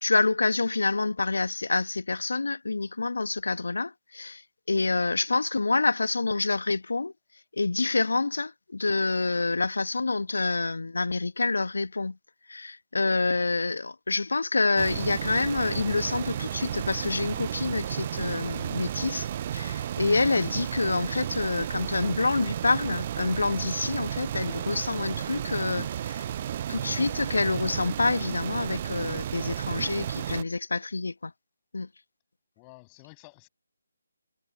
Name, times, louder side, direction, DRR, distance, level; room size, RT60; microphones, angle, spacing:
voice 1, 0.0-4.4 4.7-7.1 7.6-12.2 12.5-26.3 26.7-31.3 31.7-31.9, left 3 dB, 65° left, 1.7 m, -27 dB
sound 1, 14.8-30.4, right 10 dB, 30° right, 0.7 m, -33 dB
voice 2, 32.6-33.5, left 34 dB, 20° left, 7.8 m, -52 dB
figure-of-eight pair, 150°, 0 cm